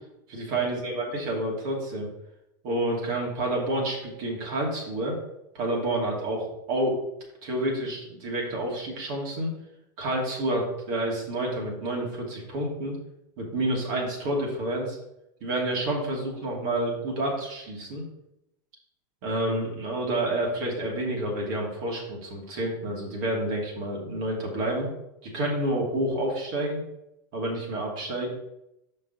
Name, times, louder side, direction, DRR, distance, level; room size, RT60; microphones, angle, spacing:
voice 1, 0.3-2.1 2.6-5.2 5.5-7.0 7.4-9.5 10.0-13.0 13.4-15.0 15.4-18.0 19.2-24.9 25.2-26.8 27.3-28.3, right 1 dB, 65° right, -2 dB, 2.6 m, -29 dB
6.0 x 5.5 x 4.0 m, 0.84 s
supercardioid pair, 120°, 10 cm